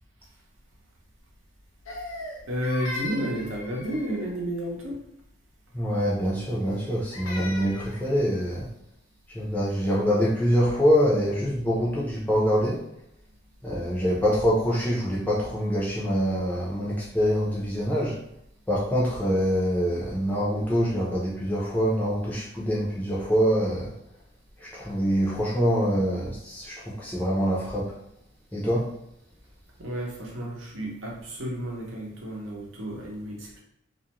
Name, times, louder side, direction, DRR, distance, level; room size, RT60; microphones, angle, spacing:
Crying sobbing, 1.9-4.4 6.6-8.0, left 2 dB, 90° left, 0.5 m, -38 dB
voice 1, 2.5-5.0 29.8-33.6, equal, 75° right, -2 dB, 0.8 m, -32 dB
voice 2, 5.7-8.7 9.3-12.8 13.6-18.1 18.7-23.9 24.6-27.9 28.5-28.9, equal, 10° left, -6 dB, 0.5 m, -25 dB
2.4 x 2.1 x 2.9 m, 0.77 s
head